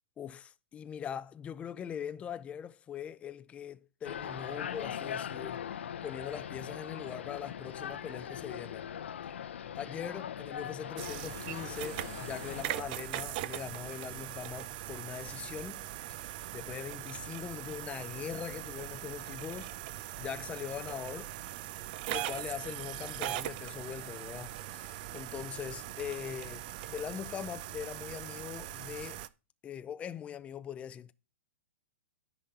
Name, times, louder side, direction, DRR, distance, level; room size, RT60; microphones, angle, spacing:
voice 1, 0.2-5.7 6.0-8.9 9.2-9.4 9.7-19.8 20.2-21.3 22.1-29.2 29.6-31.1, left 8 dB, 20° left, 0.5 m, -42 dB
sound 1, 4.0-12.6, left 9 dB, 70° left, 0.7 m, -40 dB
sound 2, 11.0-29.3, right 14 dB, 45° right, 0.5 m, -41 dB
10.0 x 4.0 x 7.1 m
hypercardioid pair, 115°, 7 cm